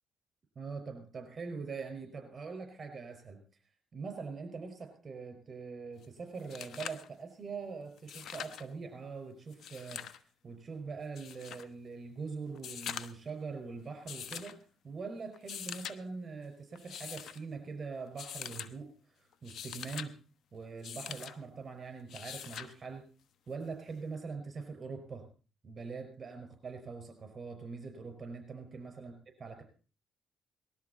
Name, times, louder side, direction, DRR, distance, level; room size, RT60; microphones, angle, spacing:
voice 1, 0.6-3.4 3.9-20.1 20.5-23.1 23.5-25.3 25.6-29.1 29.4-29.6, right 4 dB, 40° right, 6 dB, 5.3 m, -43 dB
sound 1, 6.0-6.1 6.4-7.1 8.0-8.7 9.5-10.2 11.2-11.7 12.5-13.3 14.1-14.6 15.3-16.0 16.8-17.4 18.2-18.7 19.3-20.1 20.8-21.3 22.1-22.7 24.1-24.2, left 8 dB, 70° left, 1.0 m, -43 dB
19.5 x 13.5 x 4.3 m, 0.38 s
cardioid pair, 90°, 0 cm